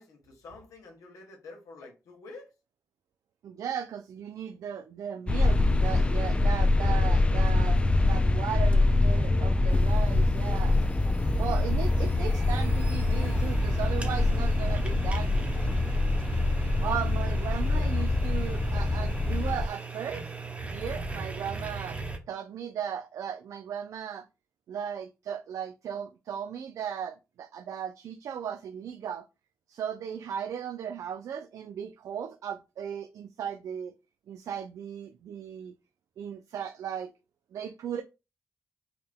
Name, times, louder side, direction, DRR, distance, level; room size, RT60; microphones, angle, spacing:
voice 1, 0.0-2.5 17.2-18.1, left 3 dB, 85° left, 1.2 m, -49 dB
voice 2, 3.4-7.8 8.1-10.8 11.4-15.5 16.8-20.3 20.7-22.0 22.3-24.3 24.7-29.2 29.7-33.9 34.3-35.7 36.2-37.1 37.5-38.0, right 8 dB, 80° right, 0.4 m, -36 dB
sound 1, 5.3-19.7, left 2 dB, 20° left, 0.4 m, -25 dB
sound 2, 9.7-22.2, right 4 dB, 25° right, 0.9 m, -37 dB
4.6 x 2.2 x 3.4 m
cardioid pair, 75°, 6 cm